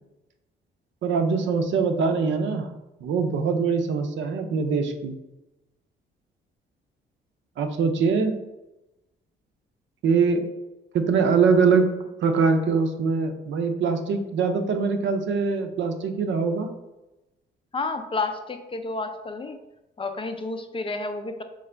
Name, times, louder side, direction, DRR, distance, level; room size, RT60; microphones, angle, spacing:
voice 1, 1.0-2.7 3.0-5.2 7.6-8.4 10.0-10.5 10.9-11.9 12.2-16.7, right 5 dB, 70° right, 6 dB, 0.6 m, -23 dB
voice 2, 17.7-19.6 20.0-21.4, left 3 dB, 25° left, 7 dB, 0.4 m, -30 dB
3.8 x 3.3 x 3.3 m, 0.98 s
cardioid pair, 90°, 20 cm